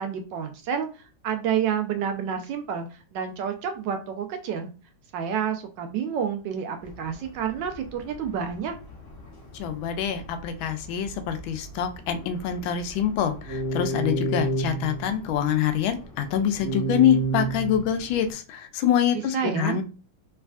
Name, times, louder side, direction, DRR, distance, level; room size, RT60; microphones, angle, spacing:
voice 1, 0.0-4.7 5.1-8.7 19.3-19.8, right 8 dB, 75° right, 5 dB, 1.1 m, -29 dB
sound 1, 6.8-18.3, right 2 dB, 55° left, 0.6 m, -33 dB
voice 2, 9.6-19.8, left 9 dB, 85° left, 8 dB, 1.4 m, -25 dB
3.4 x 3.2 x 2.3 m, 0.34 s
omnidirectional pair, 2.2 m